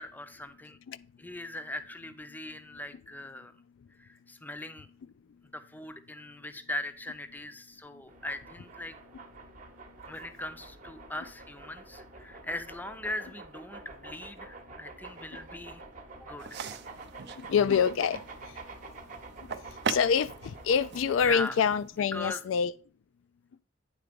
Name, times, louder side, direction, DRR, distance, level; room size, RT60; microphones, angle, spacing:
voice 1, 0.0-0.8 1.2-3.5 4.0-4.9 5.5-8.9 10.1-15.8 16.2-16.6 21.2-21.6 22.1-22.4, left 1 dB, 10° left, 0.6 m, -40 dB
sound 1, 8.1-21.4, right 3 dB, 40° right, 0.9 m, -47 dB
sound 2, 16.4-22.3, right 5 dB, 60° right, 0.5 m, -41 dB
voice 2, 17.4-18.6 19.4-22.7, left 7 dB, 75° left, 0.4 m, -27 dB
9.5 x 3.8 x 5.1 m
head